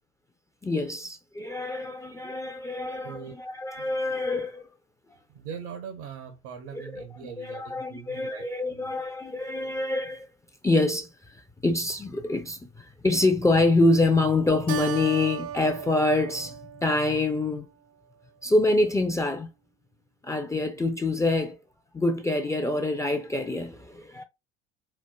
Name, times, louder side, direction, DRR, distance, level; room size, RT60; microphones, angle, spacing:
voice 1, 0.6-4.7 6.7-7.0 7.4-10.3 10.6-17.7 18.4-19.5 20.2-21.6 21.9-24.2, left 2 dB, 10° left, 0.4 m, -26 dB
voice 2, 5.3-8.9, right 7 dB, 75° right, 1.0 m, -41 dB
Keyboard (musical), 14.7-17.6, right 10 dB, 50° right, 0.6 m, -37 dB
4.4 x 2.2 x 2.2 m
hypercardioid pair, 85°, 33 cm